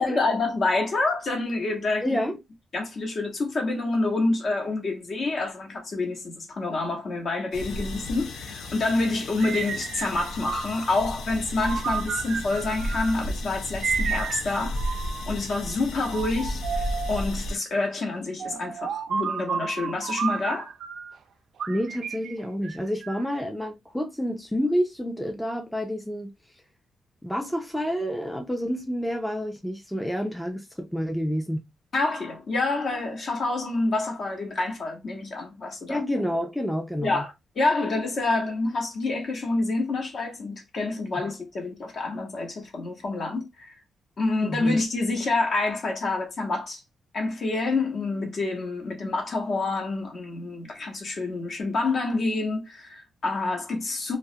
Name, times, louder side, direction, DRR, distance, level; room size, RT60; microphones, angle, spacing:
voice 1, 0.0-2.2 2.7-14.9 15.3-20.7 31.9-36.0 37.0-43.7 44.2-46.8 47.1-54.2, left 3 dB, 55° left, 0.9 m, -27 dB
voice 2, 2.0-2.4 21.7-26.6 27.2-31.6 35.9-37.2 41.1-41.2 44.4-44.8, equal, 5° left, 0.4 m, -29 dB
sound 1, 7.5-17.6, left 1 dB, 90° left, 0.4 m, -33 dB
sound 2, 9.4-11.0 11.6-13.2 13.8-15.4 16.1-17.3 18.4-21.2 21.6-23.4, right 6 dB, 70° right, 0.3 m, -32 dB
2.3 x 2.1 x 2.7 m
cardioid pair, 115°, 0 cm